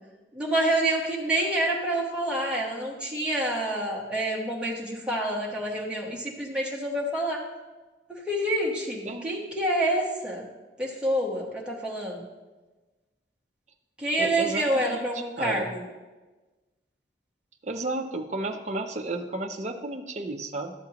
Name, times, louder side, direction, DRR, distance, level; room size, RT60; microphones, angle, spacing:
voice 1, 0.3-7.4 8.1-10.5 10.8-12.2 14.0-15.8, right 1 dB, 5° right, -4 dB, 1.1 m, -27 dB
voice 2, 14.2-15.7 17.6-20.7, right 2 dB, 40° right, 5 dB, 0.6 m, -33 dB
11.5 x 7.1 x 2.9 m, 1.2 s
head